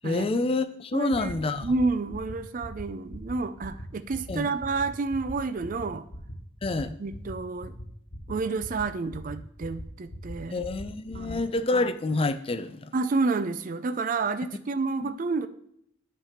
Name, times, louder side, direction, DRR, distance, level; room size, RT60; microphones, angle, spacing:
voice 1, 0.0-1.7 4.3-4.5 6.6-6.9 10.5-12.9 15.0-15.1, left 2 dB, 25° left, 11 dB, 0.4 m, -28 dB
voice 2, 0.9-6.0 7.0-7.7 8.3-10.6 11.1-11.5 12.9-15.5, right 3 dB, 40° right, 12 dB, 0.4 m, -30 dB
sound 1, 1.1-1.3 1.6-1.8 2.1-2.3 2.6-2.8 3.1-3.3 3.6-3.8 4.1-4.3 4.6-4.8 5.1-5.3 5.6-5.8 6.1-6.3 6.6-6.8 7.1-7.3 7.6-7.8 8.1-8.3 8.6-8.8 9.1-9.3 9.6-9.8 10.1-10.3 10.6-10.8 11.1-11.3, equal, 75° left, 1.4 m, -39 dB
9.0 x 3.3 x 5.7 m, 0.70 s
head